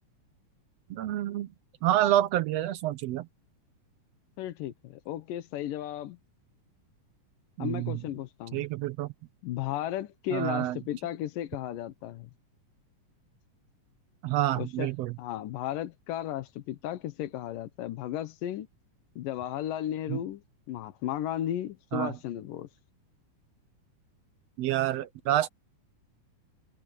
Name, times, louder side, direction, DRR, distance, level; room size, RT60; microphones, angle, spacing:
voice 1, 0.9-1.5 1.8-3.3 7.6-8.0 8.5-9.1 10.3-10.8 14.2-15.1 20.1-20.2 21.9-22.1 24.6-25.5, right 13 dB, 80° right, 1.4 m, -28 dB
voice 2, 4.4-6.2 7.6-8.7 9.4-12.3 14.6-14.9 15.2-18.7 19.2-20.4 20.7-22.7, left 12 dB, 85° left, 2.7 m, -34 dB
omnidirectional pair, 3.8 m